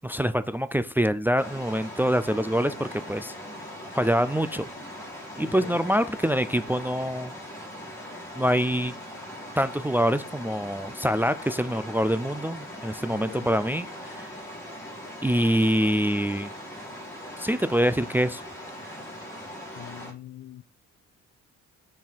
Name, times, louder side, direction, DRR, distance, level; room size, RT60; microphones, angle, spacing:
voice 1, 0.0-3.3 3.9-4.7 5.4-7.3 8.3-8.9 9.6-14.3 15.2-16.5 17.4-18.4, equal, 5° right, 0.4 m, -25 dB
sound 1, 1.4-20.1, equal, 10° left, 2.9 m, -40 dB
voice 2, 5.4-5.8 13.1-13.5 19.7-20.6, left 12 dB, 65° left, 0.7 m, -43 dB
5.9 x 4.5 x 4.1 m
cardioid pair, 90°, 30 cm